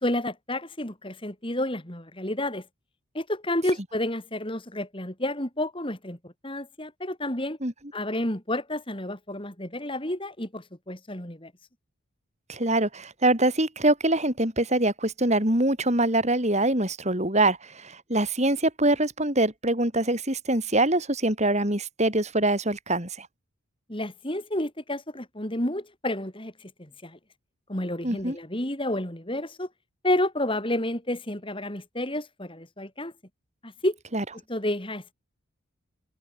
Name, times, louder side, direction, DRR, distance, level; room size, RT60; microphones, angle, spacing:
voice 1, 0.0-2.6 3.1-7.6 7.9-11.5 23.9-27.2 27.7-29.7 30.0-33.1 33.6-34.0 34.5-35.1, left 1 dB, 25° left, 3.3 m, -30 dB
voice 2, 12.5-23.3 28.0-28.4 34.1-34.2, right 1 dB, 30° right, 4.8 m, -24 dB
head